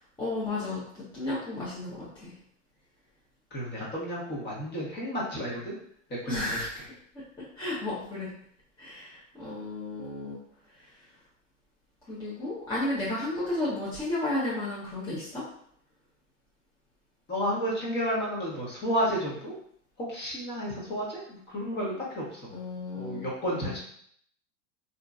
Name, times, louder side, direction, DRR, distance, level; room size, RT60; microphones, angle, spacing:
voice 1, 0.2-2.3 6.3-6.8 7.6-8.3 8.8-10.4 10.8-10.9 12.1-15.4 22.5-23.8, left 2 dB, 10° left, -9 dB, 0.9 m, -33 dB
voice 2, 3.5-5.8 6.2-6.6 17.3-19.5 20.0-22.4 23.0-23.8, equal, 25° left, -5 dB, 1.2 m, -31 dB
2.8 x 2.7 x 2.4 m, 0.64 s
hypercardioid pair, 105°, 38 cm